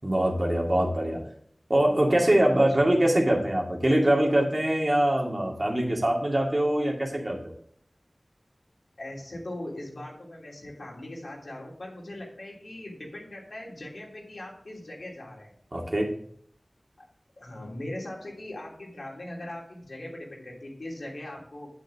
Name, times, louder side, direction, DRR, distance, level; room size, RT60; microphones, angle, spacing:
voice 1, 0.0-1.2 1.7-7.4 15.7-16.1, right 1 dB, 40° right, 0 dB, 2.2 m, -23 dB
voice 2, 9.0-15.5 17.0-17.1 17.4-21.7, left 1 dB, 85° left, -3 dB, 3.0 m, -40 dB
8.6 x 8.4 x 3.5 m, 0.63 s
wide cardioid pair, 60°, 0 cm